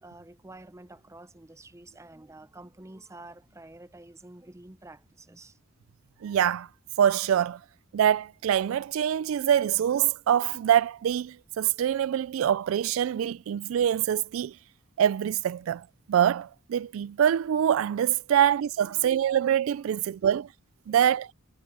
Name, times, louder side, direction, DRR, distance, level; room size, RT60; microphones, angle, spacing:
voice 1, 0.0-5.6 18.9-19.2 20.1-20.3 20.9-21.2, right 2 dB, 15° right, 0.6 m, -49 dB
voice 2, 6.2-6.7 7.0-7.6 7.9-14.5 15.0-20.5 20.9-21.3, right 9 dB, 75° right, 0.3 m, -25 dB
head